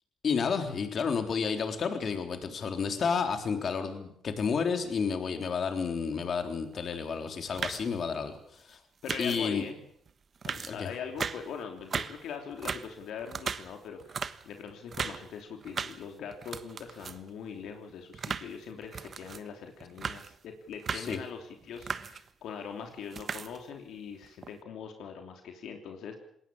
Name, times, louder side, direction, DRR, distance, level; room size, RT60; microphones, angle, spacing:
voice 1, 0.2-8.3 8.7-8.8 9.2-9.6 10.6-10.9 20.9-21.2, left 5 dB, 50° left, 6 dB, 3.6 m, -31 dB
sound 1, 6.7-7.0 7.3-8.0 9.0-9.6 10.1-10.2 10.4-11.5 11.8-12.3 12.5-15.3 15.6-16.1 16.3-17.3 17.7-19.5 19.8-20.4 20.7-21.2 21.6-22.3 22.9-23.7 24.2-24.5, right 6 dB, 45° right, 1.2 m, -37 dB
voice 2, 9.0-9.8 10.4-26.2, left 6 dB, 75° left, 4 dB, 3.1 m, -42 dB
20.5 x 18.5 x 8.7 m, 0.70 s
cardioid pair, 90°, 0 cm